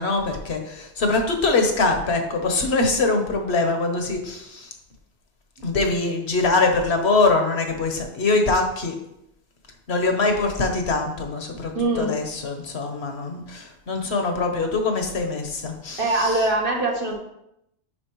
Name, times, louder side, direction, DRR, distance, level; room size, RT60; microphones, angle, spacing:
voice 1, 0.0-4.7 5.6-8.9 9.9-16.4, left 3 dB, 70° left, 4 dB, 1.2 m, -23 dB
voice 2, 11.7-12.2 16.0-17.2, right 2 dB, 55° right, -1 dB, 1.4 m, -22 dB
10.0 x 4.1 x 3.0 m, 0.81 s
omnidirectional pair, 1.2 m